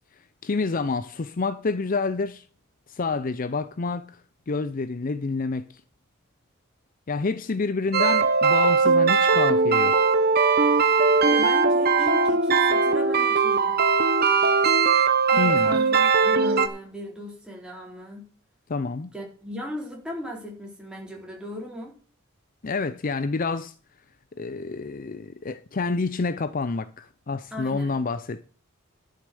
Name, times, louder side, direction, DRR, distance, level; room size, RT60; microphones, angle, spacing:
voice 1, 0.4-2.4 2.9-4.2 4.5-5.6 7.1-9.9 15.4-15.8 18.7-19.1 22.6-23.7 24.4-28.4, left 4 dB, 40° left, 0.5 m, -28 dB
sound 1, 7.9-16.7, right 4 dB, 50° right, 1.2 m, -20 dB
voice 2, 11.3-13.8 15.3-18.3 19.1-22.0 27.5-28.0, equal, 5° right, 4.1 m, -36 dB
11.5 x 6.6 x 6.9 m
head